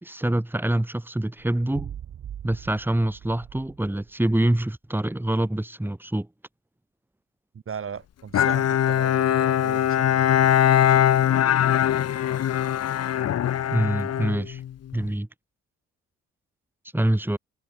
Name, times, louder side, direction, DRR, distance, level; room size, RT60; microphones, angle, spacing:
voice 1, 0.0-1.9 2.4-6.3 13.7-14.6 14.9-15.3 16.9-17.4, right 1 dB, 5° right, 3.5 m, -25 dB
sound 1, 1.4-4.2, right 9 dB, 60° right, 4.1 m, -41 dB
voice 2, 7.5-10.6, right 7 dB, 45° right, 4.0 m, -38 dB
Bowed string instrument, 8.3-15.0, left 10 dB, 55° left, 1.1 m, -21 dB
cardioid pair, 90°, 30 cm